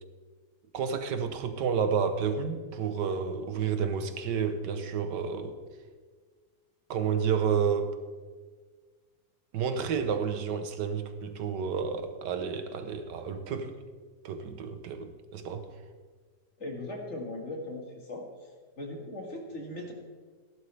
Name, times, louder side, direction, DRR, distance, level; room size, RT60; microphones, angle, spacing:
voice 1, 0.7-5.6 6.9-8.0 9.5-13.7 14.2-15.7, right 6 dB, 75° right, 8 dB, 1.6 m, -30 dB
voice 2, 16.6-18.3 18.8-19.9, left 1 dB, 40° left, 1 dB, 2.0 m, -38 dB
16.0 x 11.5 x 3.4 m, 1.5 s
omnidirectional pair, 1.9 m